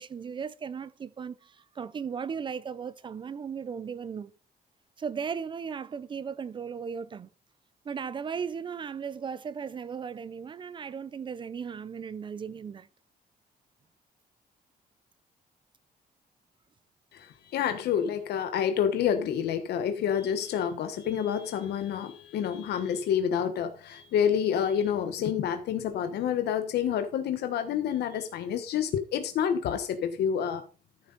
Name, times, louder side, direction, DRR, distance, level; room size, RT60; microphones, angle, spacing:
voice 1, 0.0-4.3 5.0-7.3 7.8-12.9, right 6 dB, 30° right, 0.5 m, -36 dB
voice 2, 17.1-30.6, left 8 dB, 90° left, 1.3 m, -28 dB
13.5 x 7.8 x 4.1 m
cardioid pair, 175°, 16 cm